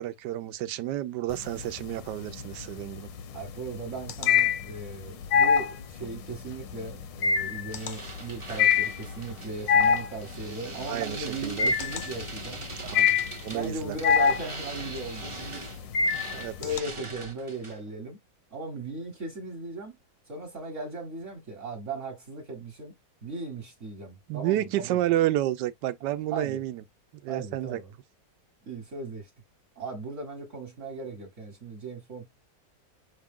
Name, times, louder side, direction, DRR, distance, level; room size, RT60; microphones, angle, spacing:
voice 1, 0.0-3.1 10.5-10.6 10.9-11.7 12.8-13.1 13.4-14.0 16.3-16.6 24.3-26.8 27.2-27.8, right 14 dB, 75° right, 1.2 m, -30 dB
sound 1, 1.3-1.9 2.3-16.8, left 6 dB, 80° left, 1.4 m, -25 dB
voice 2, 3.3-12.6 13.5-15.6 16.6-18.2 18.5-20.0 20.3-22.9 23.2-25.0 26.3-26.6 27.3-27.9 28.7-29.3 29.8-32.3, right 3 dB, 45° right, 1.4 m, -37 dB
sound 2, 7.7-17.9, right 3 dB, 25° right, 0.7 m, -42 dB
6.1 x 2.3 x 3.6 m
omnidirectional pair, 1.9 m